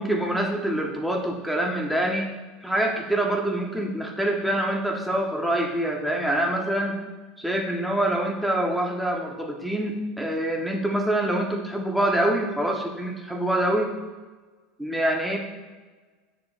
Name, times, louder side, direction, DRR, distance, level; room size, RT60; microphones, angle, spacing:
voice 1, 0.0-2.3 2.6-7.0 7.4-13.9 14.8-15.4, right 1 dB, ahead, 1 dB, 0.8 m, -25 dB
8.7 x 6.7 x 2.4 m, 1.3 s
supercardioid pair, 150°, 0 cm